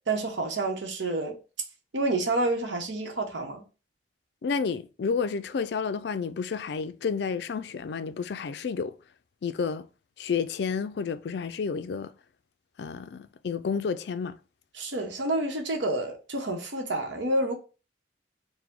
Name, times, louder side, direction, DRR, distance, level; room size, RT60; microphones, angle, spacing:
voice 1, 0.1-1.4 1.9-3.6 14.8-17.5, right 2 dB, 80° right, 0.9 m, -29 dB
voice 2, 4.4-8.9 9.4-9.9 10.2-12.1 12.8-14.4, left 5 dB, 65° left, 0.3 m, -30 dB
4.7 x 2.1 x 3.6 m
head